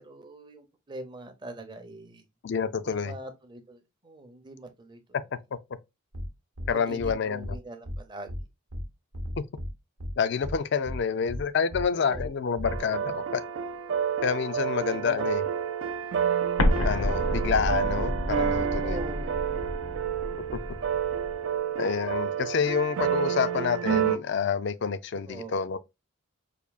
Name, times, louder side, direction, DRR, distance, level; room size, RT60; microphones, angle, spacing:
voice 1, 0.0-2.2 2.8-5.0 6.6-8.3 10.8-10.9 11.9-12.3 14.9-15.3 18.8-19.4 25.3-25.6, right 2 dB, 20° right, 0.6 m, -43 dB
voice 2, 2.4-3.1 6.7-7.6 10.2-13.4 14.2-15.4 16.8-19.0 21.8-25.8, left 6 dB, 55° left, 0.4 m, -28 dB
sound 1, 6.1-6.3 6.6-6.7 7.0-7.1 7.4-7.6 7.9-8.0 8.3-8.4 8.7-8.8 9.1-9.7 10.0-10.1 10.4-10.6 10.9-11.0 11.3-11.4 11.7-11.8 12.1-12.3 12.6-12.8, equal, 90° right, 0.8 m, -34 dB
sound 2, 12.6-24.2, right 8 dB, 65° right, 0.4 m, -29 dB
Explosion, 16.6-21.3, left 1 dB, 80° left, 0.7 m, -29 dB
5.0 x 2.6 x 2.3 m
head